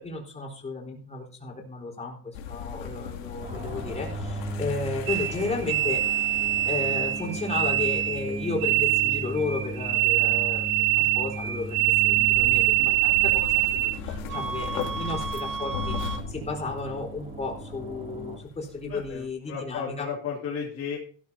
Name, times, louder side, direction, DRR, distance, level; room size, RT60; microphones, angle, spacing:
voice 1, 0.0-6.0 6.6-10.7 11.0-12.7 13.0-16.0 16.3-20.1, left 3 dB, 15° left, 0 dB, 4.2 m, -33 dB
sound 1, 2.3-19.3, left 7 dB, 90° left, 2.7 m, -40 dB
sound 2, 3.4-18.4, right 1 dB, 20° right, 2.7 m, -38 dB
sound 3, 5.1-13.9 14.3-16.2, right 16 dB, 80° right, 2.1 m, -25 dB
voice 2, 18.9-21.0, left 6 dB, 35° left, -2 dB, 2.7 m, -34 dB
15.5 x 12.5 x 2.8 m, 0.42 s
cardioid pair, 140°, 39 cm